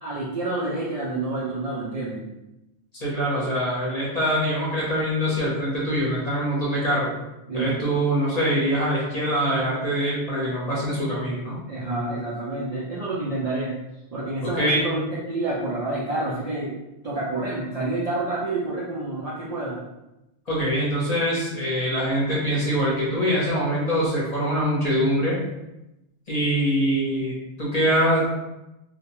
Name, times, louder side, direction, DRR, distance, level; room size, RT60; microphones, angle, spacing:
voice 1, 0.0-2.2 7.5-7.7 11.6-13.7 14.1-16.7 17.0-19.8, right 2 dB, 55° right, -6 dB, 0.4 m, -28 dB
voice 2, 2.9-7.1 7.5-11.6 14.4-14.8 20.5-25.4 26.3-28.3, equal, 40° left, -6 dB, 0.8 m, -24 dB
2.3 x 2.2 x 2.9 m, 0.93 s
omnidirectional pair, 1.2 m